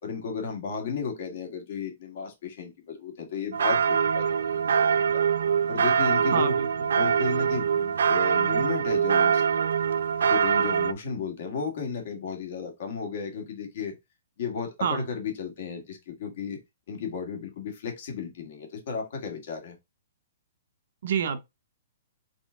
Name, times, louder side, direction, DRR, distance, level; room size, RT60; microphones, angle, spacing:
voice 1, 0.0-4.6 5.1-5.2 5.7-6.6 7.0-9.6 10.3-13.9 14.4-16.6 16.9-19.8, left 5 dB, 45° left, 1.5 m, -34 dB
sound 1, 3.5-10.9, right 7 dB, 80° right, 0.3 m, -24 dB
voice 2, 6.3-6.7 14.8-15.1 21.0-21.4, right 7 dB, 50° right, 0.7 m, -26 dB
3.7 x 3.3 x 3.6 m
hypercardioid pair, 175°, 0 cm